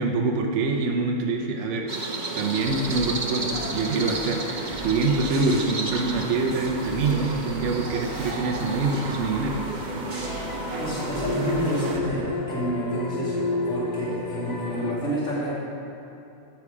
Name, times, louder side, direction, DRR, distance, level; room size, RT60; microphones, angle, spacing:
voice 1, 0.0-1.9 2.3-9.6, right 3 dB, 60° right, 2 dB, 1.1 m, -25 dB
sound 1, 1.9-12.0, right 2 dB, 35° right, 1.0 m, -33 dB
sound 2, 2.6-12.2, right 1 dB, 80° right, 2.4 m, -38 dB
sound 3, 9.9-14.9, left 2 dB, 35° left, 0.9 m, -31 dB
voice 2, 10.8-15.5, equal, 55° left, -7 dB, 2.9 m, -29 dB
13.5 x 8.4 x 4.9 m, 2.8 s
omnidirectional pair, 1.5 m